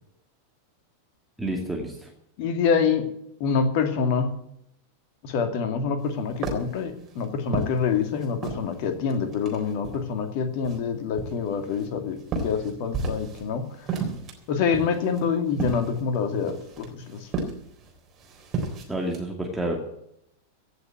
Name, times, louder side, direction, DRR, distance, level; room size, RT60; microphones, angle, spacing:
voice 1, 1.4-2.1 18.9-19.8, right 1 dB, 5° right, 0 dB, 2.3 m, -29 dB
voice 2, 2.4-3.0 3.4-4.3 5.2-14.0 14.5-17.3, left 6 dB, 45° left, 6 dB, 2.3 m, -26 dB
sound 1, 6.0-8.7 9.1-10.2 10.6-13.5 13.7-19.2, right 3 dB, 30° right, 3.7 m, -33 dB
16.0 x 7.1 x 8.9 m, 0.75 s
figure-of-eight pair, 90°, 0 cm